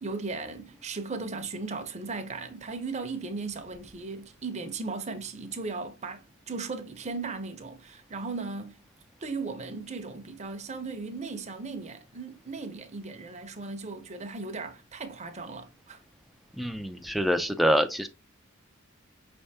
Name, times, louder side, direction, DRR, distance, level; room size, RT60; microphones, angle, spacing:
voice 1, 0.0-8.8 9.2-16.0, right 3 dB, 35° right, 0.7 m, -37 dB
voice 2, 16.6-18.1, equal, ahead, 0.4 m, -25 dB
5.5 x 3.4 x 2.7 m
head